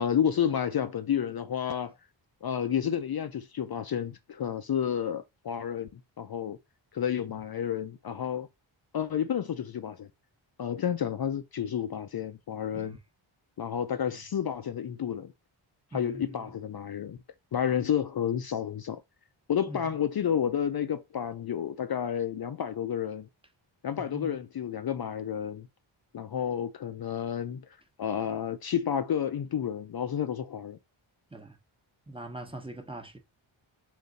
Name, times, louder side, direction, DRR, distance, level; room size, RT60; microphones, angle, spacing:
voice 1, 0.0-1.9 2.4-6.6 6.9-8.5 8.9-10.1 10.6-12.9 13.6-15.3 15.9-17.2 17.5-19.0 19.5-23.3 23.8-25.7 26.1-27.6 28.0-30.8, left 9 dB, 50° left, 0.5 m, -30 dB
voice 2, 15.9-16.5 19.7-20.0 24.0-24.4 31.3-31.6 32.1-33.2, right 2 dB, 10° right, 0.9 m, -43 dB
3.8 x 2.6 x 4.0 m
wide cardioid pair, 85°, 49 cm